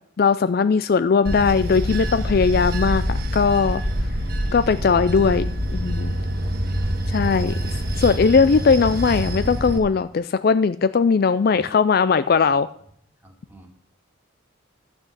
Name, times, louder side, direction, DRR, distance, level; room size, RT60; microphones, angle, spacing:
voice 1, 0.2-3.8 4.5-6.1 7.1-7.6 8.0-12.7, left 5 dB, 45° left, 14 dB, 0.3 m, -19 dB
Bell / Train, 1.2-9.8, equal, 50° right, 1.5 m, -26 dB
voice 2, 6.4-7.7 13.2-13.7, right 1 dB, 10° right, 1 dB, 2.2 m, -49 dB
12.0 x 6.0 x 7.9 m, 0.62 s
head